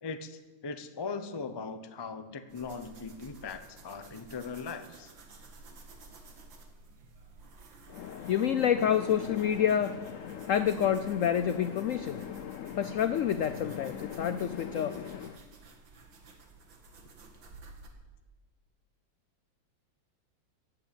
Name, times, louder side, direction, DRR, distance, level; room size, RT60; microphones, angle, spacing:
voice 1, 0.0-5.1, left 4 dB, 40° left, 0.3 m, -39 dB
sound 1, 2.5-17.9, right 3 dB, 85° right, 2.4 m, -53 dB
voice 2, 7.9-15.4, left 9 dB, 85° left, 0.7 m, -29 dB
15.0 x 8.4 x 8.9 m
omnidirectional pair, 2.0 m